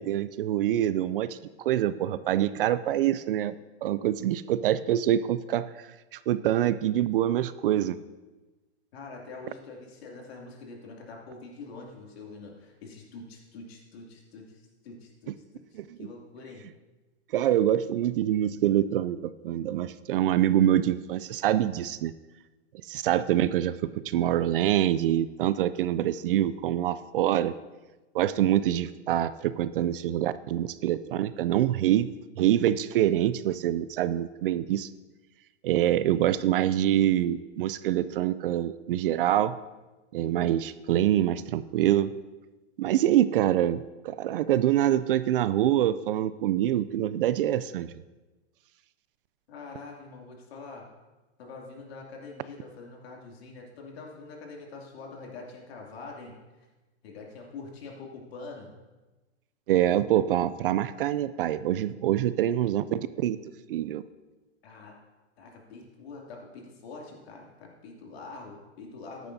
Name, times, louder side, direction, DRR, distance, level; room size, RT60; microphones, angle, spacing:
voice 1, 0.0-3.5 3.8-5.9 6.1-8.0 15.7-15.9 17.3-22.1 22.9-27.5 28.1-32.1 32.4-34.9 35.6-39.6 40.1-42.1 42.8-47.9 59.7-63.4 63.7-64.0, right 12 dB, 55° right, 15 dB, 0.4 m, -25 dB
voice 2, 8.9-16.6 49.5-50.8 51.4-56.4 57.0-58.7 64.6-65.0 65.4-69.3, left 3 dB, 60° left, 0 dB, 2.7 m, -45 dB
13.5 x 10.5 x 2.7 m, 1.2 s
hypercardioid pair, 150°, 34 cm